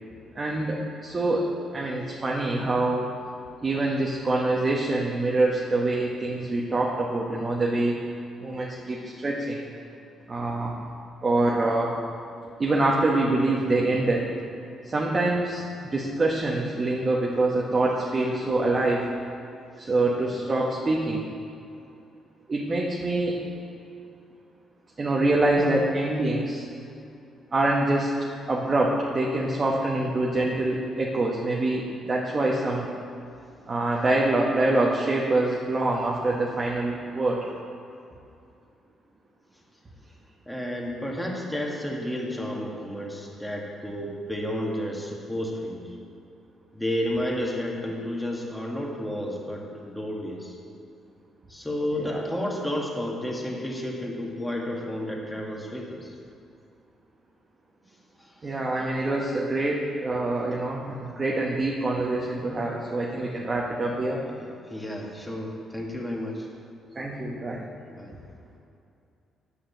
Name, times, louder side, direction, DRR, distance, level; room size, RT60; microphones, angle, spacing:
voice 1, 0.3-3.1 3.6-8.0 8.4-9.6 10.3-10.8 11.2-12.0 12.6-14.3 14.8-19.1 19.8-21.3 22.5-23.4 25.0-26.7 27.5-28.1 28.5-32.9 33.7-37.4 51.9-52.3 58.4-64.2 66.9-67.6, right 2 dB, 35° right, -3 dB, 1.4 m, -25 dB
voice 2, 40.5-45.9 46.7-50.6 51.5-56.1 58.2-58.5 63.1-63.3 64.4-66.5 67.9-68.2, left 1 dB, 5° left, -2 dB, 2.1 m, -31 dB
9.5 x 6.6 x 8.1 m, 2.6 s
cardioid pair, 90°, 0 cm